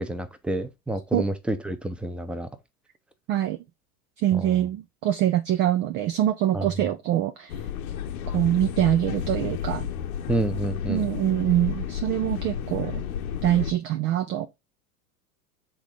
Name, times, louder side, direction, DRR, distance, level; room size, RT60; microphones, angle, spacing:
voice 1, 0.0-2.5 4.3-4.7 6.5-6.7 10.3-11.1, right 1 dB, ahead, 0.7 m, -29 dB
voice 2, 4.2-7.6 8.3-9.9 10.9-13.0 13.4-14.5, right 12 dB, 25° right, 0.4 m, -24 dB
sound 1, 7.5-13.7, left 9 dB, 60° left, 1.1 m, -32 dB
6.9 x 3.7 x 3.7 m
figure-of-eight pair, 85°, 48 cm